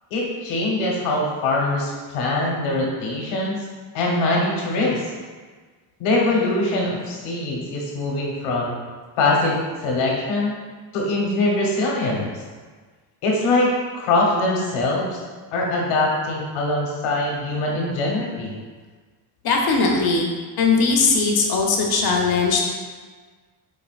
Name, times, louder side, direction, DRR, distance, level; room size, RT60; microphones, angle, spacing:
voice 1, 0.1-3.6 3.9-5.0 6.0-8.7 9.2-10.6 10.9-12.3 13.2-15.2 15.5-18.5, left 2 dB, 85° left, -3 dB, 1.1 m, -22 dB
voice 2, 19.4-20.3 20.6-22.7, left 4 dB, 50° left, 0 dB, 0.7 m, -19 dB
5.1 x 2.7 x 2.4 m, 1.5 s
cardioid pair, 85°, 48 cm